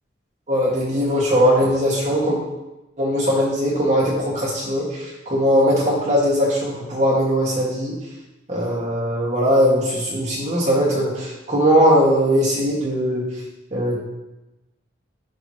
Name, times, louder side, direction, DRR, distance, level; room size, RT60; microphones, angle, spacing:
voice 1, 0.5-2.4 3.0-8.0 8.5-13.2 13.7-14.0, equal, 35° right, -7 dB, 2.0 m, -19 dB
10.5 x 4.1 x 3.1 m, 1.0 s
head